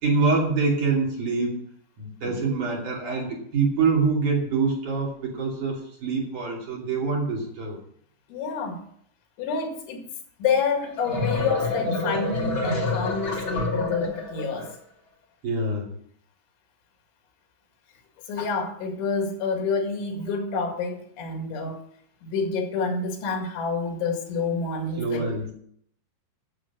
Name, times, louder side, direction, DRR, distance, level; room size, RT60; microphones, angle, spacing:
voice 1, 0.0-1.6 2.0-7.8 15.4-15.9 24.9-25.5, right 4 dB, 45° right, -2 dB, 3.7 m, -25 dB
voice 2, 8.3-8.8 9.4-10.1 10.4-14.7 18.3-21.8 22.2-25.4, left 4 dB, 75° left, 4 dB, 4.4 m, -28 dB
sound 1, 10.8-14.7, left 2 dB, 30° left, 2.7 m, -27 dB
12.5 x 7.3 x 7.3 m, 0.65 s
omnidirectional pair, 5.5 m